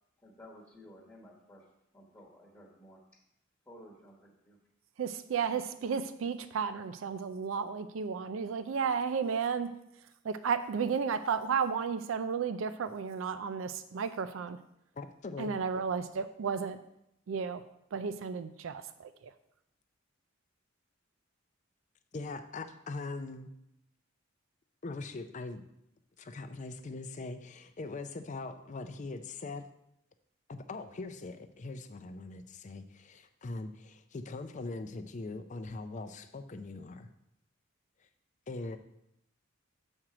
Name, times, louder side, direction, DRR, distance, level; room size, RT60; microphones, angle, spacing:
voice 1, 0.2-1.6 1.9-3.0 3.7-4.6, equal, 15° left, -4 dB, 1.2 m, -54 dB
voice 2, 5.0-9.7 10.2-14.6 15.4-16.8 17.3-17.6 17.9-19.3, right 6 dB, 75° right, 11 dB, 0.4 m, -33 dB
voice 3, 14.9-15.5 22.1-23.5 24.8-25.6 26.2-29.7 30.5-37.1 38.5-38.8, left 3 dB, 35° left, 9 dB, 0.5 m, -41 dB
7.5 x 4.4 x 4.9 m, 0.81 s
head